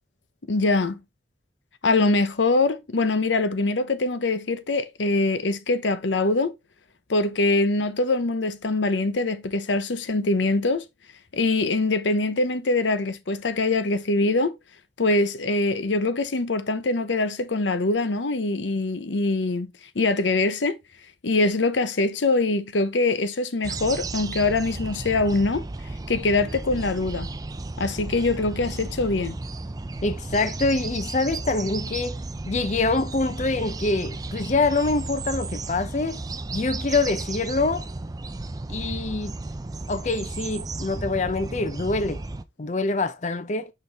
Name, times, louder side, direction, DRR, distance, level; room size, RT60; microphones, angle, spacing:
voice 1, 0.5-1.0 1.8-6.5 7.1-10.8 11.3-14.5 15.0-20.8 21.2-25.6 26.1-27.3 27.8-29.3, left 2 dB, 85° left, 0.8 m, -23 dB
sound 1, 23.6-42.4, right 2 dB, 20° right, 0.4 m, -34 dB
voice 2, 30.0-32.2 32.5-36.2 36.5-37.8 38.7-39.3 39.9-42.2 42.6-43.7, left 3 dB, 40° left, 0.5 m, -25 dB
6.4 x 5.2 x 3.4 m
head